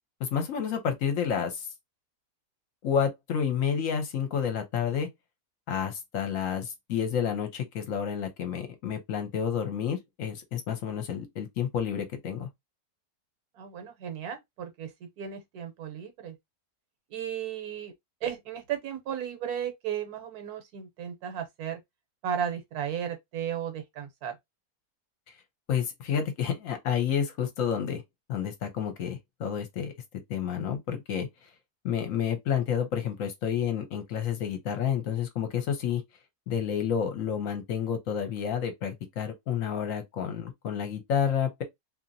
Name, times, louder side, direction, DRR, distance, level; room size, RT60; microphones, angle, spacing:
voice 1, 0.2-1.7 2.8-5.1 5.7-12.5 25.7-28.0 28.3-29.9 30.3-31.3 31.8-36.0 36.5-41.6, left 8 dB, 65° left, 1.0 m, -30 dB
voice 2, 13.5-16.3 17.1-17.9 18.2-21.8 22.2-24.4, right 9 dB, 75° right, 1.3 m, -35 dB
2.8 x 2.7 x 2.6 m
omnidirectional pair, 1.7 m